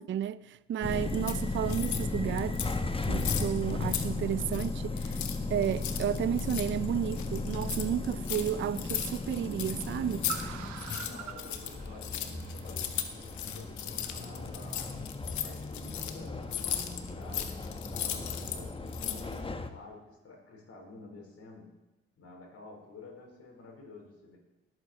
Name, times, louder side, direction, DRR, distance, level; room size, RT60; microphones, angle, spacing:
voice 1, 0.0-2.5 3.1-5.2 5.5-10.2, right 10 dB, 40° right, 0.5 m, -32 dB
sound 1, 0.8-19.7, left 3 dB, 20° left, 1.1 m, -36 dB
sound 2, 1.1-2.1 2.4-2.8 3.0-4.1 4.3-4.7 5.0-10.4 10.7-18.6 18.9-19.4, left 10 dB, 70° left, 1.2 m, -37 dB
Car, 7.5-14.9, right 10 dB, 70° right, 1.1 m, -48 dB
voice 2, 11.0-14.8 15.3-17.6 17.9-21.8 22.2-24.4, left 3 dB, 50° left, 4.8 m, -50 dB
18.0 x 8.4 x 4.5 m
hypercardioid pair, 55°, 30 cm